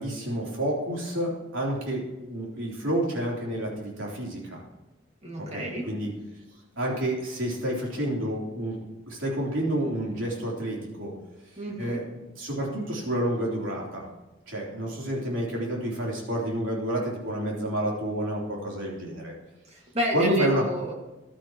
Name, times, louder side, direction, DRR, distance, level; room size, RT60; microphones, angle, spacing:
voice 1, 0.0-4.6 5.4-6.1 6.8-8.8 9.1-11.1 11.8-14.1 14.5-19.3 20.1-20.6, right 1 dB, 75° right, -3 dB, 3.6 m, -29 dB
voice 2, 5.2-5.9 11.6-12.0 19.7-20.9, equal, 35° right, 0 dB, 2.1 m, -29 dB
14.5 x 11.5 x 3.0 m, 1.1 s
head